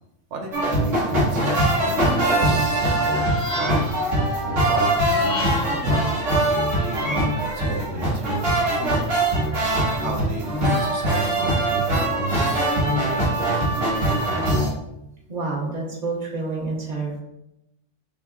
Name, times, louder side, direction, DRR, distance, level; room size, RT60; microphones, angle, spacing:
voice 1, 0.3-3.3 3.6-9.1 10.0-13.9, right 2 dB, 70° right, 2 dB, 1.1 m, -35 dB
sound 1, 0.5-14.7, right 1 dB, 90° right, 1.7 m, -22 dB
sound 2, 2.9-4.1 5.0-5.9, left 2 dB, 45° left, 0.5 m, -34 dB
voice 2, 15.3-17.2, right 3 dB, 35° right, -4 dB, 1.3 m, -28 dB
5.3 x 3.5 x 2.4 m, 0.85 s
omnidirectional pair, 1.3 m